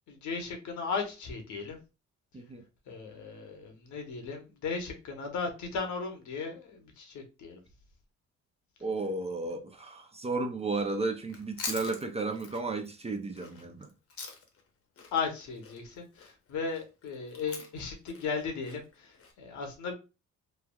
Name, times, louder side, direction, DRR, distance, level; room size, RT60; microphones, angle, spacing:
voice 1, 0.1-1.8 2.9-7.6 15.1-19.9, left 5 dB, 75° left, 0.9 m, -36 dB
voice 2, 8.8-13.9, right 3 dB, 20° right, 0.4 m, -33 dB
Chewing mastication, 11.2-14.7 15.0-19.3, left 4 dB, 50° left, 0.8 m, -43 dB
3.1 x 2.3 x 2.3 m
cardioid pair, 90°, 30 cm